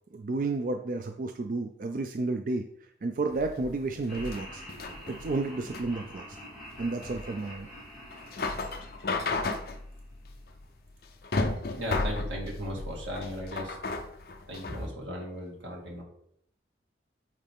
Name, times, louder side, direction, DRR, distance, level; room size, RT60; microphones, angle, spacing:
voice 1, 0.1-2.7 3.0-4.6 5.1-6.4 6.8-7.7, right 3 dB, 45° right, 6 dB, 0.4 m, -31 dB
sound 1, 3.3-14.9, left 3 dB, 55° left, 0.6 m, -34 dB
Laughter, 4.1-10.3, equal, ahead, 2.0 m, -47 dB
voice 2, 11.8-13.8 14.5-16.0, equal, 85° right, -2 dB, 2.1 m, -37 dB
7.5 x 4.1 x 3.5 m, 0.70 s
head